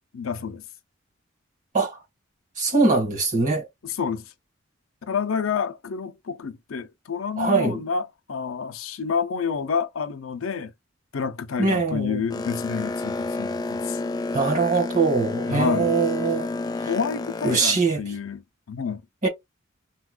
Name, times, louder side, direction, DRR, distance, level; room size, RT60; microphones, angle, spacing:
voice 1, 0.1-0.6 3.8-4.3 5.0-10.7 11.1-14.0 15.5-15.9 16.9-19.0, left 6 dB, 90° left, 0.6 m, -29 dB
voice 2, 2.6-3.6 7.4-7.8 11.6-12.2 14.3-16.5 17.4-18.0 19.2-19.3, right 4 dB, 40° right, 1.7 m, -22 dB
Boat Water vehicle, 12.3-17.6, left 3 dB, 20° left, 0.3 m, -29 dB
4.1 x 2.3 x 2.3 m
head